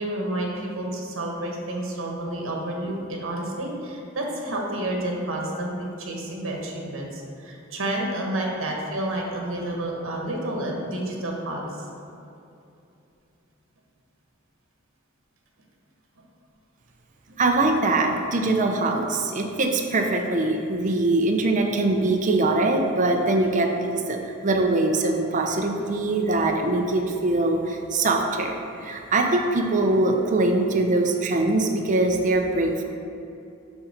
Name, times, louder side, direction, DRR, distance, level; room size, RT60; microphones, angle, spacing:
voice 1, 0.0-11.9 25.1-25.3, right 1 dB, 75° right, -1 dB, 1.3 m, -30 dB
voice 2, 17.4-32.8, right 2 dB, 40° right, 2 dB, 0.6 m, -22 dB
7.1 x 3.8 x 5.8 m, 2.7 s
head